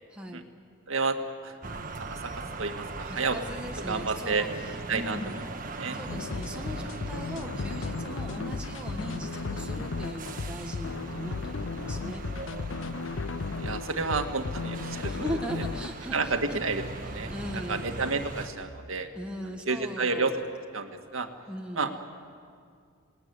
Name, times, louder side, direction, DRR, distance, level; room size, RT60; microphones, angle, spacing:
voice 1, 0.1-0.4 3.1-5.4 5.9-12.2 15.1-16.6 17.0-17.8 19.1-20.4 21.5-21.9, equal, 5° right, 0 dB, 1.4 m, -39 dB
voice 2, 0.9-1.6 1.9-2.3 2.6-3.4 3.9-4.5 4.9-5.2 5.8-6.0 13.5-15.3 16.1-19.1 19.7-20.3 20.7-21.3 21.8-21.9, right 4 dB, 85° right, 6 dB, 1.9 m, -30 dB
sound 1, 1.6-18.5, right 2 dB, 40° right, 1.4 m, -40 dB
sound 2, 6.1-15.9, left 4 dB, 70° left, 0.6 m, -35 dB
27.0 x 19.0 x 9.6 m, 2.2 s
head